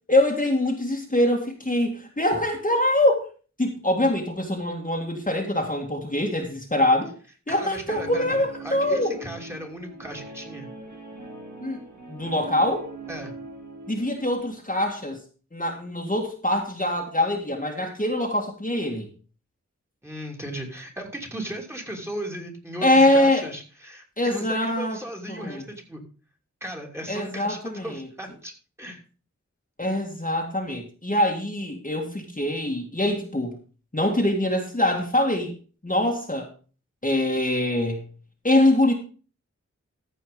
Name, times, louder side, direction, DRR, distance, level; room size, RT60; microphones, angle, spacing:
voice 1, 0.1-3.3 3.6-7.1 7.5-9.2 11.6-11.8 12.1-12.9 13.9-15.2 15.5-19.1 22.8-23.4 24.2-25.0 25.3-25.6 27.1-28.1 29.8-33.6 33.9-35.5 35.8-36.5 37.0-38.0 38.4-38.9, left 1 dB, 25° left, 1 dB, 1.9 m, -23 dB
voice 2, 7.5-10.7 13.1-13.3 20.0-26.0 26.6-28.5 28.8-29.0, equal, 10° right, 3 dB, 2.8 m, -36 dB
Guitar, 7.9-14.4, right 3 dB, 80° right, 3.6 m, -41 dB
14.5 x 5.1 x 5.3 m, 0.38 s
wide cardioid pair, 65°, 29 cm